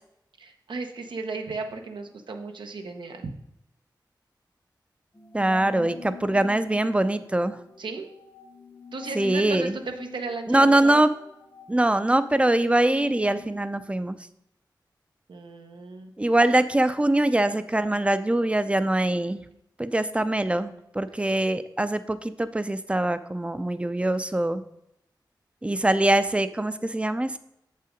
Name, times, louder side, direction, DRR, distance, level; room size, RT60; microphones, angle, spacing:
voice 1, 0.4-3.3 7.8-8.1 8.9-11.0 15.3-16.1, right 3 dB, 85° right, 5 dB, 0.9 m, -35 dB
sound 1, 5.1-13.8, left 4 dB, 30° left, 0.9 m, -45 dB
voice 2, 5.3-7.6 9.2-9.8 10.5-11.1 11.7-14.2 16.2-19.4 19.8-24.6 25.6-27.4, right 1 dB, 15° right, 12 dB, 0.5 m, -23 dB
7.3 x 5.6 x 5.1 m, 0.81 s
wide cardioid pair, 80°, 8 cm